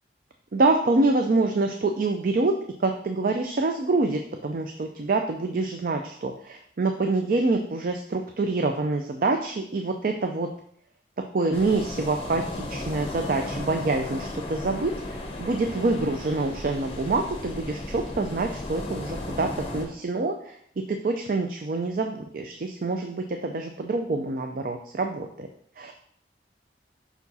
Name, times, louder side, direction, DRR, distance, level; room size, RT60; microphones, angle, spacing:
voice 1, 0.5-2.5 2.8-10.5 11.3-20.6 20.9-25.5 25.8-25.9, right 3 dB, 50° right, 5 dB, 0.4 m, -26 dB
sound 1, 11.5-19.9, left 2 dB, 30° left, 0.9 m, -35 dB
5.7 x 4.7 x 4.1 m, 0.66 s
head